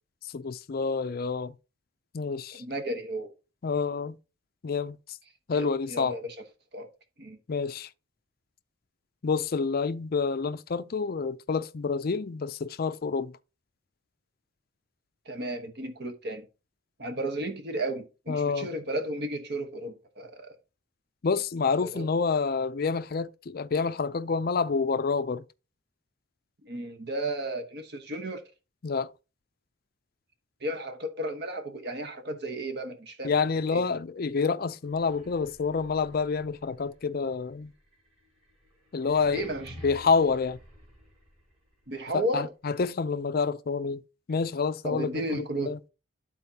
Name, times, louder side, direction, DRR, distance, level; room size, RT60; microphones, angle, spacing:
voice 1, 0.3-1.5 2.1-2.6 3.6-4.2 4.6-5.2 5.5-6.2 7.5-7.9 9.2-13.3 18.3-18.7 21.2-25.4 28.8-29.1 33.2-37.7 38.9-39.5 39.8-40.6 42.1-44.0 44.3-45.8, left 5 dB, 50° left, 0.4 m, -28 dB
voice 2, 2.6-3.3 5.5-6.4 6.7-6.9 7.2-7.4 15.3-16.5 17.0-20.5 21.7-22.1 26.6-28.5 30.6-33.3 33.7-33.8 39.3-39.7 41.9-42.5 44.8-45.8, right 1 dB, 55° right, 1.1 m, -34 dB
sound 1, 34.8-41.7, equal, 35° right, 4.3 m, -51 dB
12.5 x 4.2 x 2.8 m
head